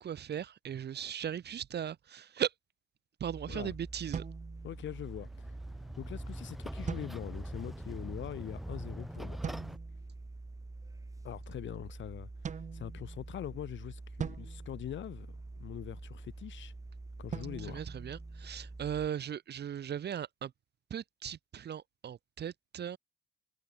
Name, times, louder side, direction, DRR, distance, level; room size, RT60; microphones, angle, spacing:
voice 1, 0.0-2.5 3.2-4.2 17.6-20.5 20.9-23.0, right 9 dB, 55° right, 1.7 m, -38 dB
sound 1, 3.2-19.1, right 2 dB, 15° right, 2.7 m, -46 dB
sound 2, 4.1-5.2 6.9-7.7 9.4-10.1 12.4-13.5 14.2-15.7 17.3-18.8, right 7 dB, 40° right, 0.7 m, -43 dB
voice 2, 4.6-5.6 6.0-9.4 11.2-16.7 17.2-17.8, left 11 dB, 70° left, 2.5 m, -43 dB
sound 3, 4.6-9.8, equal, ahead, 0.7 m, -43 dB
cardioid pair, 90°, 20 cm